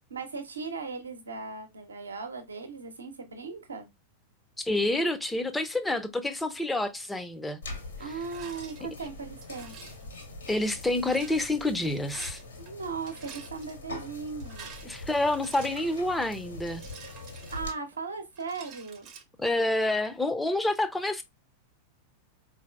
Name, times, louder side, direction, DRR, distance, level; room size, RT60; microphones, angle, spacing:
voice 1, 0.1-3.9 8.0-9.7 12.6-14.7 17.5-19.1, right 4 dB, 75° right, 0.8 m, -38 dB
voice 2, 4.6-7.6 10.5-12.4 14.8-16.8 19.4-21.2, left 2 dB, 5° left, 0.5 m, -28 dB
sound 1, 7.6-17.7, left 2 dB, 70° left, 1.2 m, -43 dB
Rattle, 8.2-8.8 9.4-10.0 10.9-11.4 12.0-12.7 13.0-13.7 14.3-16.1 16.7-18.0 18.3-19.2, right 7 dB, 35° right, 0.7 m, -48 dB
4.3 x 2.6 x 2.3 m
figure-of-eight pair, 90°, 0 cm